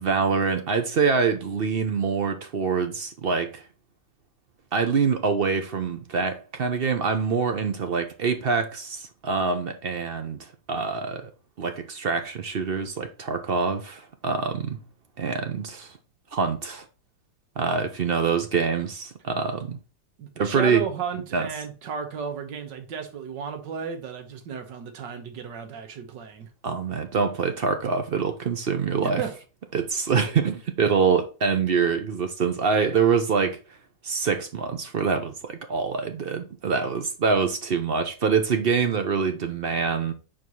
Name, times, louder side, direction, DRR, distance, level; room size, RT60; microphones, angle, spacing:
voice 1, 0.0-3.6 4.7-11.3 11.6-14.8 15.2-16.0 16.3-16.8 17.6-19.8 20.4-20.8 21.3-21.5 26.6-29.2 29.7-33.6 34.0-40.1, right 5 dB, 55° right, 0.6 m, -25 dB
voice 2, 20.2-26.5 29.0-29.4, right 6 dB, 90° right, 1.7 m, -34 dB
4.7 x 4.5 x 5.3 m
omnidirectional pair, 1.9 m